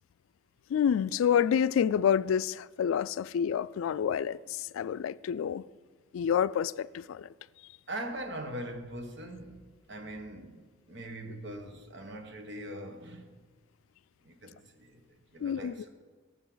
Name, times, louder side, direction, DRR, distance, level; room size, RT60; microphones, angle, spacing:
voice 1, 0.7-5.6 6.1-7.3 15.4-15.7, left 8 dB, 85° left, 0.3 m, -28 dB
voice 2, 7.9-13.4 14.2-15.0 15.3-15.9, right 1 dB, 60° right, 1.3 m, -41 dB
18.0 x 7.4 x 3.9 m
head